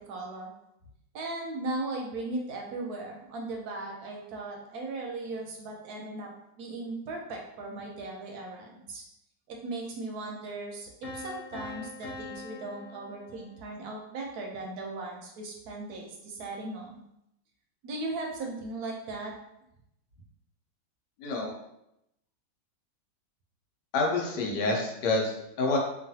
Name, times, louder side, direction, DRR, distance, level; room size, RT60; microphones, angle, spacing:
voice 1, 0.1-0.5 1.1-6.3 6.6-9.0 9.5-17.0 17.8-19.3, right 2 dB, 70° right, 1 dB, 1.0 m, -37 dB
Piano, 11.0-13.9, left 3 dB, 65° left, 1.2 m, -43 dB
voice 2, 21.2-21.5 23.9-25.8, left 3 dB, 85° left, -1 dB, 1.3 m, -28 dB
3.0 x 2.4 x 2.6 m, 0.83 s
omnidirectional pair, 1.8 m